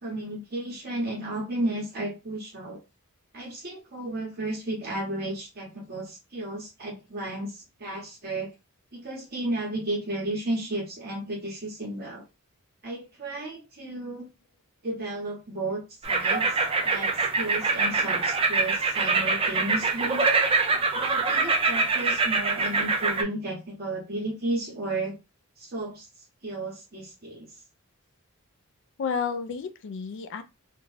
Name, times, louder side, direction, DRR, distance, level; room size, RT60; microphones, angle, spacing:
voice 1, 0.0-2.8 3.3-8.5 8.9-12.2 12.8-14.3 14.8-16.6 16.8-17.1 17.4-20.2 20.9-25.2 25.6-26.1 26.4-27.5, right 1 dB, 45° right, 1.1 m, -33 dB
sound 1, 16.0-23.2, right 4 dB, 25° right, 0.4 m, -24 dB
voice 2, 29.0-30.4, left 6 dB, 55° left, 0.4 m, -31 dB
2.5 x 2.2 x 3.2 m
head